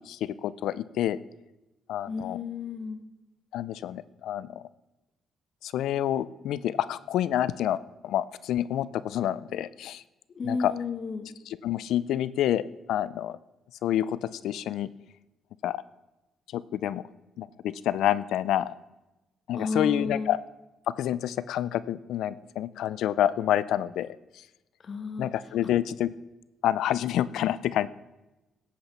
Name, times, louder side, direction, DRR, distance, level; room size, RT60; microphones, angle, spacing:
voice 1, 0.1-1.2 1.9-2.4 3.5-4.6 5.6-10.0 10.4-10.7 11.5-13.4 13.8-14.9 15.6-15.8 16.5-17.0 17.4-18.7 19.5-20.4 21.0-24.4 25.2-26.1 26.6-27.9, left 11 dB, 80° left, 17 dB, 0.5 m, -28 dB
voice 2, 2.1-3.0 10.4-11.3 19.5-20.3 24.8-25.3, left 4 dB, 50° left, 6 dB, 1.8 m, -32 dB
15.0 x 8.7 x 5.7 m, 1.0 s
cardioid pair, 90°, 0 cm